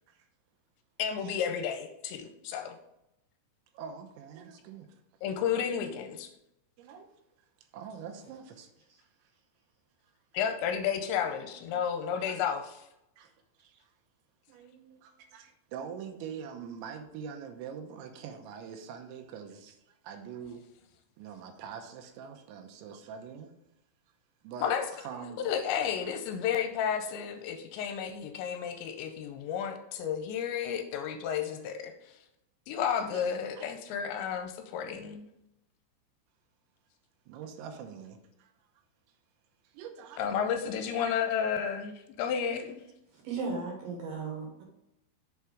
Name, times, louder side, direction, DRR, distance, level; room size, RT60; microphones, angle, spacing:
voice 1, 1.0-2.8 5.2-6.3 10.3-12.7 24.6-24.9 25.4-31.9 32.7-35.3 40.2-42.8, left 8 dB, 85° left, 6 dB, 2.8 m, -32 dB
voice 2, 3.7-4.9 6.8-7.1 7.7-8.7 9.0-9.3 12.1-12.5 13.2-13.3 13.6-13.9 14.5-20.6 21.2-23.5 24.4-24.8 25.0-25.4 33.1-33.2 33.6-33.8 37.3-38.5 39.6-40.3 42.7-42.8, right 7 dB, 85° right, 5 dB, 3.1 m, -44 dB
voice 3, 43.1-44.6, right 4 dB, 70° right, 0 dB, 2.4 m, -36 dB
7.0 x 4.6 x 4.8 m, 0.84 s
omnidirectional pair, 5.3 m